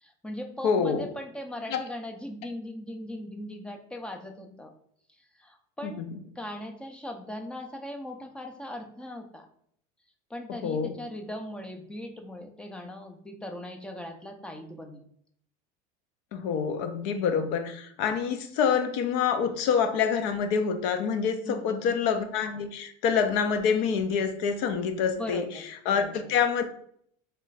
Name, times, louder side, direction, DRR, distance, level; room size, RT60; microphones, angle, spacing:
voice 1, 0.0-4.7 5.4-6.0 6.4-9.5 10.3-15.0 21.4-21.9 25.1-25.6 26.0-26.3, left 1 dB, 5° left, 4 dB, 0.4 m, -39 dB
voice 2, 0.6-1.1 1.7-1.8 5.8-6.1 10.6-11.0 16.3-25.5 25.9-26.6, left 6 dB, 60° left, 8 dB, 0.6 m, -26 dB
3.2 x 2.4 x 3.9 m, 0.65 s
supercardioid pair, 145°, 17 cm